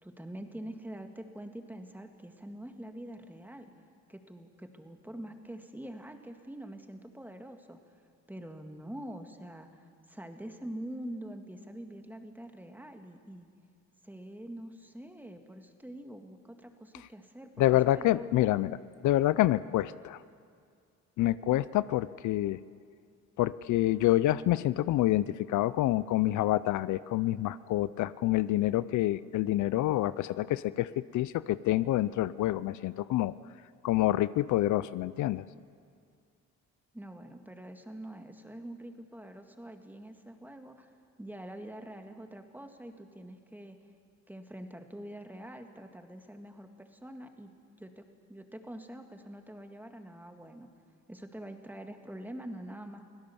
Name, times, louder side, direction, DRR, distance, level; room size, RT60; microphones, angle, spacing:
voice 1, 0.0-3.7 4.1-8.0 8.3-13.5 14.0-17.6 17.9-18.3 36.9-40.9 41.2-43.8 44.3-47.5 47.8-48.0 48.3-50.7 51.1-53.0, right 1 dB, 5° right, 5 dB, 1.8 m, -45 dB
voice 2, 17.6-18.8 19.0-20.2 21.2-22.6 23.4-33.3 33.8-35.4, left 15 dB, 75° left, 17 dB, 0.5 m, -27 dB
24.5 x 16.5 x 7.0 m, 2.2 s
cardioid pair, 90°, 30 cm